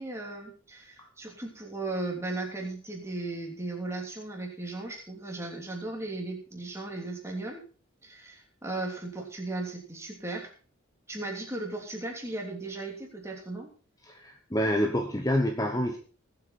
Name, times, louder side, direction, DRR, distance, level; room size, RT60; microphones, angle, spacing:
voice 1, 0.0-7.6 8.0-10.5 11.1-13.7, right 2 dB, 15° right, 1 dB, 3.1 m, -36 dB
voice 2, 14.0-16.0, equal, 15° left, 4 dB, 1.1 m, -27 dB
20.0 x 8.0 x 4.3 m, 0.41 s
head